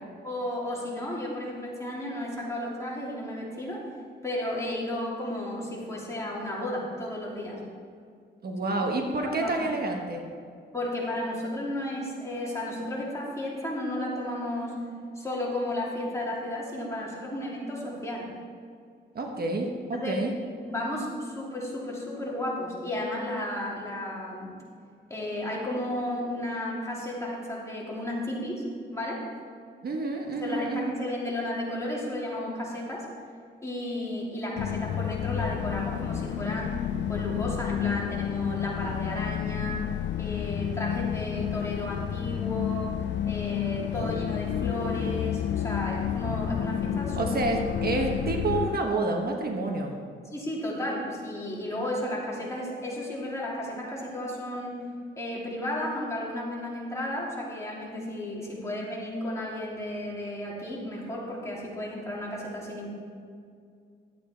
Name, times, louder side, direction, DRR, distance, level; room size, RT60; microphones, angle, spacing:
voice 1, 0.2-3.8 4.2-7.6 9.1-9.7 10.7-14.8 15.1-18.3 19.9-20.2 20.6-24.5 25.1-28.6 28.9-29.2 30.4-33.0 33.6-39.9 40.2-42.9 43.3-47.4 50.3-54.8 55.2-62.9, left 1 dB, 15° left, -5 dB, 3.0 m, -33 dB
voice 2, 8.4-10.2 19.1-20.3 29.8-30.9 47.2-50.0, right 2 dB, 55° right, 2 dB, 1.2 m, -29 dB
sound 1, 34.6-48.8, left 10 dB, 70° left, 0.4 m, -30 dB
12.0 x 8.4 x 4.5 m, 2.3 s
cardioid pair, 105°, 19 cm